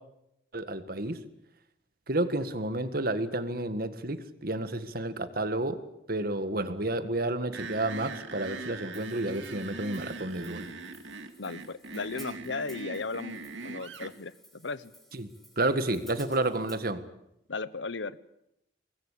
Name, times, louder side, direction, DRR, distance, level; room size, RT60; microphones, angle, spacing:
voice 1, 0.5-1.2 2.1-5.8 6.1-10.7 15.1-15.3 15.6-17.0, right 2 dB, 55° right, 11 dB, 1.8 m, -30 dB
sound 1, 7.5-14.1, right 3 dB, 90° right, 2.2 m, -41 dB
Hi-hat, 8.9-16.8, equal, ahead, 4.9 m, -56 dB
voice 2, 11.4-13.3 13.6-14.9 17.5-18.2, left 3 dB, 80° left, 17 dB, 1.0 m, -36 dB
24.0 x 20.5 x 8.5 m, 0.83 s
head